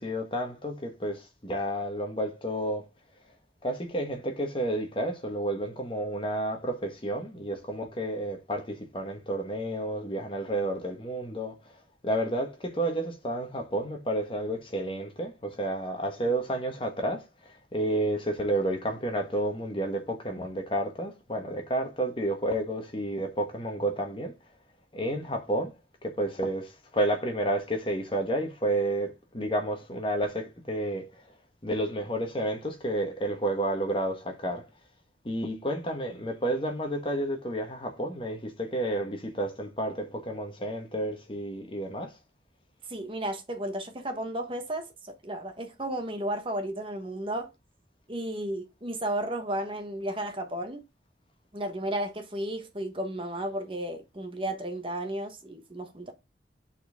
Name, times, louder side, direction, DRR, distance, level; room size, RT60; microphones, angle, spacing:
voice 1, 0.0-2.8 3.6-11.6 12.0-24.3 24.9-25.7 26.0-31.1 31.6-34.7 35.2-42.1, right 1 dB, 30° left, 1.3 m, -31 dB
voice 2, 42.9-47.5 48.1-50.8 51.5-56.1, right 1 dB, 30° right, 1.1 m, -33 dB
7.8 x 4.3 x 3.5 m
head